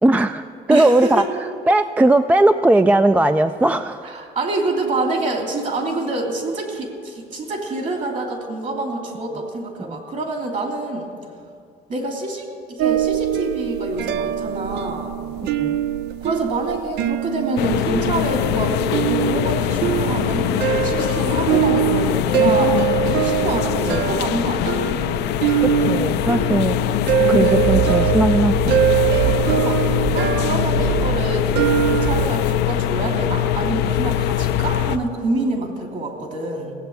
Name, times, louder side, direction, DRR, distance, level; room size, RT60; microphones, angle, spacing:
voice 1, 0.0-1.2 1.7-4.1 9.8-10.0 15.6-15.8 23.9-24.1 25.6-26.8 27.3-28.8, right 2 dB, 10° right, 10 dB, 0.3 m, -18 dB
voice 2, 0.7-1.3 4.0-11.1 11.9-15.2 16.2-24.8 29.4-36.7, right 2 dB, 50° right, 2 dB, 3.0 m, -26 dB
sound 1, 12.8-32.3, right 12 dB, 75° right, 0.5 m, -23 dB
sound 2, 17.6-35.0, left 12 dB, 80° left, 0.5 m, -22 dB
17.0 x 7.9 x 8.0 m, 2.3 s
cardioid pair, 110°, 17 cm